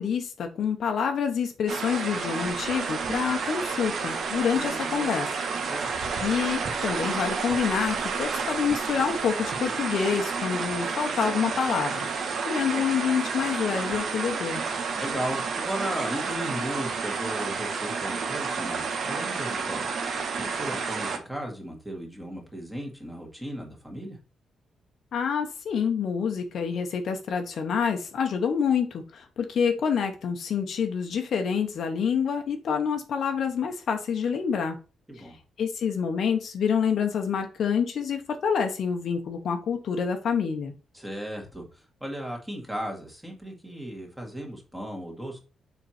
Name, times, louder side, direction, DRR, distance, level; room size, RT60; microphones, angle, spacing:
voice 1, 0.0-5.3 6.2-12.1 12.5-14.6 25.1-34.8 35.2-35.3 35.6-40.7, left 6 dB, 55° left, 5 dB, 1.0 m, -27 dB
sound 1, 1.7-21.2, right 5 dB, 50° right, 1.2 m, -30 dB
voice 2, 4.5-5.2 5.6-5.9 15.0-20.0 20.4-24.2 35.1-35.4 40.9-45.4, right 1 dB, 5° right, 1 dB, 1.9 m, -36 dB
6.9 x 4.5 x 4.3 m, 0.33 s
wide cardioid pair, 165°, 0 cm